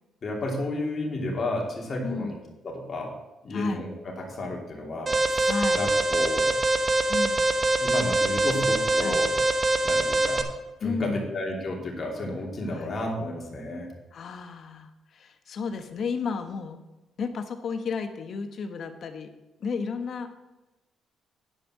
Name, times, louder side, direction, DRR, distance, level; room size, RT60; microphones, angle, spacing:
voice 1, 0.2-2.4 2.6-3.1 3.4-6.5 7.8-9.3 9.8-10.4 10.8-13.9, left 1 dB, 45° left, -1 dB, 2.8 m, -32 dB
voice 2, 2.0-2.4 3.5-3.8 5.4-5.9 7.1-7.5 9.0-9.2 10.8-11.3 12.7-12.9 14.1-14.9 15.2-16.8 17.2-19.3 19.6-20.3, left 5 dB, 60° left, 8 dB, 1.1 m, -32 dB
Alarm, 5.1-10.4, right 2 dB, 30° right, 0.9 m, -24 dB
9.9 x 5.4 x 6.5 m, 1.0 s
cardioid pair, 90°, 0 cm